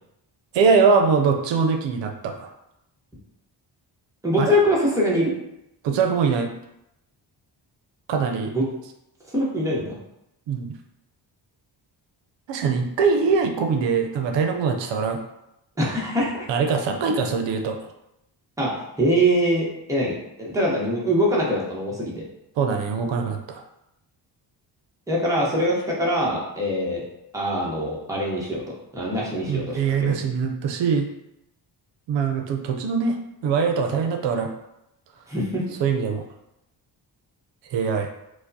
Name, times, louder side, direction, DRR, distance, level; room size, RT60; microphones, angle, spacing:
voice 1, 0.5-2.5 4.4-4.6 5.8-6.5 8.1-8.5 10.5-10.7 12.5-15.2 16.5-17.8 22.6-23.6 29.5-31.1 32.1-33.2 33.4-34.5 35.8-36.2 37.7-38.1, right 5 dB, 85° right, 5 dB, 0.5 m, -22 dB
voice 2, 4.2-5.3 8.5-8.6 9.3-10.0 15.8-16.5 18.6-18.7 19.0-22.2 25.1-27.0 27.3-28.6 28.9-30.2 35.3-35.6, equal, 5° right, -5 dB, 0.8 m, -23 dB
4.8 x 2.0 x 2.6 m, 0.84 s
wide cardioid pair, 150°, 42 cm